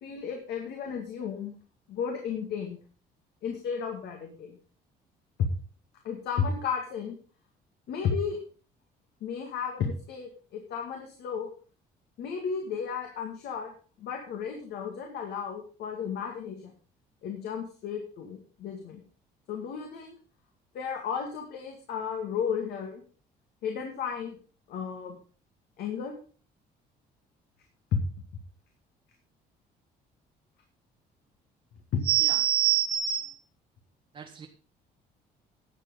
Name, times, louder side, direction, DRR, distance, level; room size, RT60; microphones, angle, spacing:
voice 1, 0.0-1.5 1.9-2.8 3.4-4.6 5.4-5.5 6.0-7.2 7.9-8.4 9.2-11.5 12.2-13.7 14.0-16.7 17.2-19.0 19.5-20.1 20.7-23.0 23.6-24.4 24.7-25.2 25.8-26.1 27.9-28.0 31.9-32.0, left 6 dB, 75° left, 3 dB, 2.2 m, -33 dB
voice 2, 32.0-33.4 34.1-34.5, right 12 dB, 35° right, 2 dB, 1.3 m, -25 dB
11.5 x 7.6 x 5.3 m, 0.39 s
cardioid pair, 110°, 17 cm